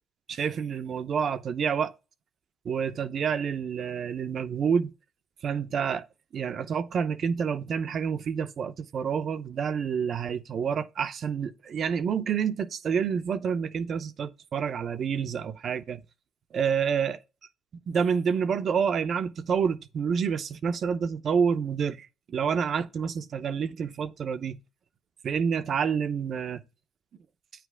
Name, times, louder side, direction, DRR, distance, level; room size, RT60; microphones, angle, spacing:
voice 1, 0.3-1.9 2.6-4.9 5.4-6.0 6.3-16.0 16.5-17.2 17.9-24.6 25.2-26.6, right 7 dB, 50° right, 0.7 m, -28 dB
9.0 x 3.4 x 6.1 m
cardioid pair, 90°, 0 cm